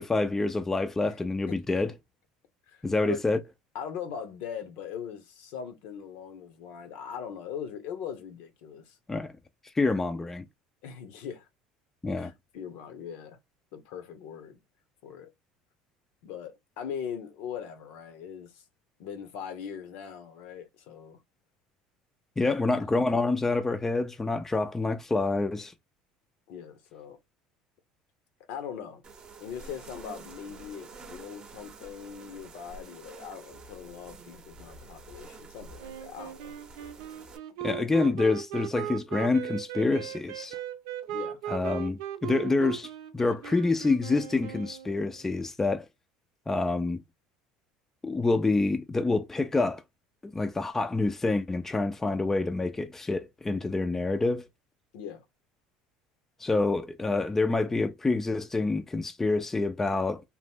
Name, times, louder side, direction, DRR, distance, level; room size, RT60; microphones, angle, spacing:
voice 1, 0.0-1.9 2.8-3.4 9.1-9.3 9.8-10.4 12.0-12.3 22.4-25.7 37.6-40.6 41.5-45.9 46.5-47.0 48.0-49.8 50.2-54.4 56.4-60.2, left 3 dB, 15° left, 0.4 m, -27 dB
voice 2, 1.5-1.8 2.7-3.2 3.7-9.0 10.8-11.5 12.2-13.4 13.7-14.6 15.0-15.3 16.2-18.6 19.0-21.2 22.4-23.1 26.5-27.2 28.5-29.0 29.4-36.5 41.1-41.4 54.9-55.2, left 8 dB, 75° left, 0.8 m, -41 dB
sound 1, 29.0-37.4, right 3 dB, 35° right, 0.7 m, -48 dB
Wind instrument woodwind instrument, 35.8-45.3, right 11 dB, 80° right, 0.6 m, -38 dB
2.9 x 2.0 x 3.4 m
supercardioid pair, 100°, 3 cm